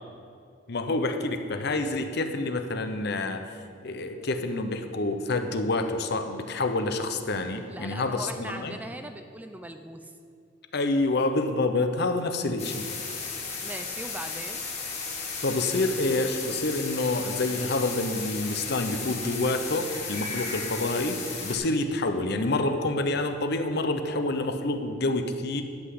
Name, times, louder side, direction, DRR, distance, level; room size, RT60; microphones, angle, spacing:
voice 1, 0.7-3.4 3.8-8.8 10.7-12.9 15.4-25.6, left 2 dB, 60° left, 7 dB, 0.8 m, -27 dB
voice 2, 7.7-10.1 13.6-14.6, right 1 dB, 10° right, 7 dB, 0.4 m, -40 dB
sound 1, 12.6-21.6, left 4 dB, 35° left, 2.1 m, -35 dB
11.5 x 5.8 x 7.8 m, 2.5 s
head